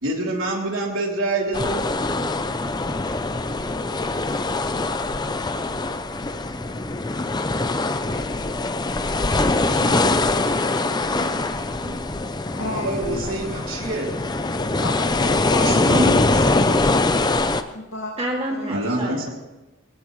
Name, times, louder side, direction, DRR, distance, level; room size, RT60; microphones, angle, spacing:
voice 1, 0.0-1.8 12.7-14.1 15.6-16.4 18.7-19.3, right 1 dB, 75° right, -1 dB, 3.2 m, -26 dB
sound 1, 1.5-17.6, left 2 dB, 20° left, 0.6 m, -23 dB
voice 2, 9.7-12.0 12.5-13.0 18.2-19.3, right 1 dB, 30° right, -1 dB, 2.2 m, -33 dB
voice 3, 12.6-13.9 14.8-15.9 16.4-16.6 17.7-18.1 18.5-18.7, left 2 dB, 80° left, -2 dB, 2.1 m, -32 dB
21.5 x 17.5 x 3.2 m, 1.1 s
head